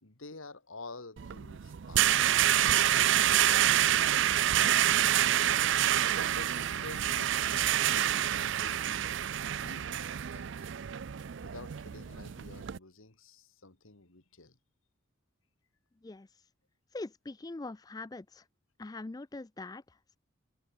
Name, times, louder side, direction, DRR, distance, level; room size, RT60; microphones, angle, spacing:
voice 1, 0.0-2.1 2.7-5.3 6.1-9.1 9.4-10.1 10.3-10.7 11.4-14.6, left 3 dB, 80° left, 2.5 m, -50 dB
sound 1, 1.2-12.8, right 11 dB, 60° right, 0.4 m, -27 dB
sound 2, 2.2-7.6, right 2 dB, 85° right, 2.0 m, -57 dB
voice 2, 16.0-16.4 16.9-18.5 18.8-20.2, left 2 dB, 20° left, 0.4 m, -43 dB
head